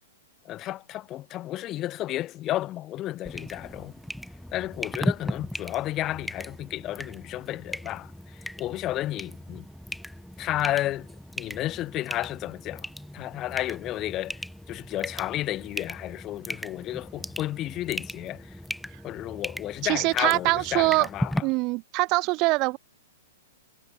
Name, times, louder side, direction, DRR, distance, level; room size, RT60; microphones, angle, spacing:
voice 1, 0.4-3.9 4.5-9.7 10.4-11.1 11.4-18.6 19.0-21.5, left 14 dB, 30° left, 2.7 m, -32 dB
sound 1, 3.2-21.4, equal, ahead, 3.3 m, -37 dB
voice 2, 19.8-21.1 21.4-22.8, right 24 dB, 40° right, 0.8 m, -23 dB
hypercardioid pair, 125°, 0 cm